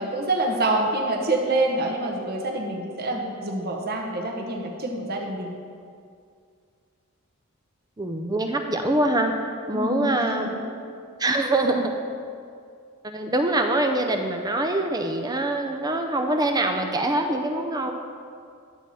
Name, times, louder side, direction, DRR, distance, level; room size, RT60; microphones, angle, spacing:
voice 1, 0.0-5.5 9.7-10.5, right 2 dB, 45° right, 0 dB, 1.1 m, -26 dB
voice 2, 8.0-9.3 9.7-10.6 11.2-11.9 13.0-17.9, right 1 dB, 20° right, 4 dB, 0.5 m, -24 dB
11.0 x 7.7 x 4.1 m, 2.2 s
head